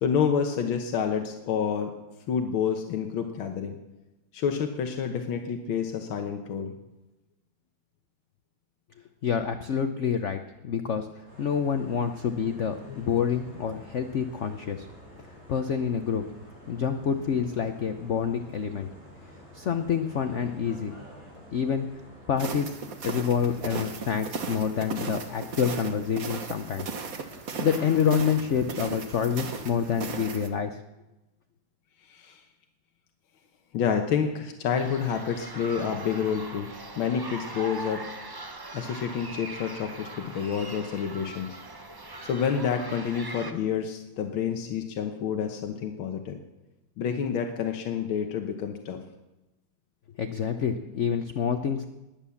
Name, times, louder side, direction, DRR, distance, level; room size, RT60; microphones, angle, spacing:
voice 1, 0.0-1.9 2.3-3.8 4.3-6.7 12.4-12.5 12.9-13.1 32.1-32.4 33.7-36.7 37.0-38.0 38.7-41.6 42.2-46.4 47.0-49.0, left 7 dB, 90° left, 5 dB, 1.9 m, -29 dB
voice 2, 9.2-11.1 11.4-14.9 15.5-16.2 16.7-18.9 19.5-20.9 21.5-21.9 22.3-22.8 23.0-26.9 27.6-30.8 50.2-51.8, left 7 dB, 55° left, 7 dB, 0.8 m, -27 dB
sound 1, 11.3-30.4, left 1 dB, 65° right, 7.8 m, -48 dB
sound 2, 22.4-30.5, right 5 dB, 50° right, 1.5 m, -37 dB
sound 3, 34.7-43.5, right 2 dB, 30° right, 0.4 m, -41 dB
20.5 x 9.0 x 7.1 m, 1.0 s
omnidirectional pair, 2.1 m